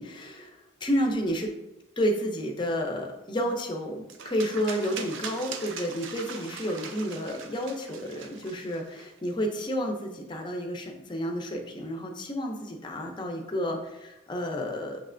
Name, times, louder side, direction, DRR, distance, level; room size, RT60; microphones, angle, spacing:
voice 1, 0.0-1.5 2.0-15.0, equal, 25° left, 2 dB, 0.5 m, -31 dB
sound 1, 4.1-9.3, right 6 dB, 70° right, 0.5 m, -41 dB
6.2 x 3.2 x 2.5 m, 0.93 s
head